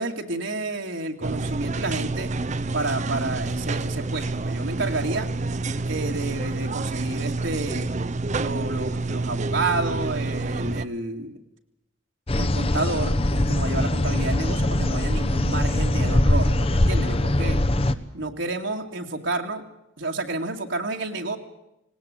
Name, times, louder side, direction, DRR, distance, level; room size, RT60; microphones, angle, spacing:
voice 1, 0.0-2.3 2.7-5.3 5.9-7.9 8.4-11.4 12.4-17.6 18.1-19.6 20.0-21.4, right 2 dB, 70° right, 2 dB, 2.3 m, -30 dB
sound 1, 1.2-10.9, right 3 dB, 35° right, 0.7 m, -28 dB
sound 2, 12.3-17.9, left 1 dB, 30° left, 0.9 m, -22 dB
19.0 x 19.0 x 8.9 m, 0.85 s
head